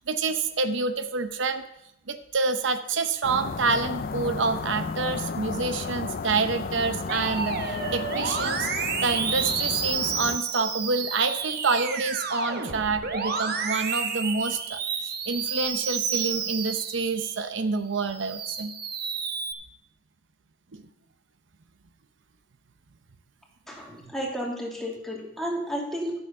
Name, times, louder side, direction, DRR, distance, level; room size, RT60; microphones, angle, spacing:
voice 1, 0.1-1.6 2.1-8.6 9.0-18.7 20.7-20.8, right 4 dB, 80° right, 9 dB, 0.8 m, -27 dB
sound 1, 3.2-10.4, left 4 dB, 50° left, 0.5 m, -33 dB
Musical instrument, 7.1-17.5 18.0-19.5, right 6 dB, 55° right, 1.1 m, -30 dB
voice 2, 23.7-26.1, equal, ahead, -3 dB, 2.5 m, -32 dB
13.0 x 7.1 x 5.4 m, 0.82 s
head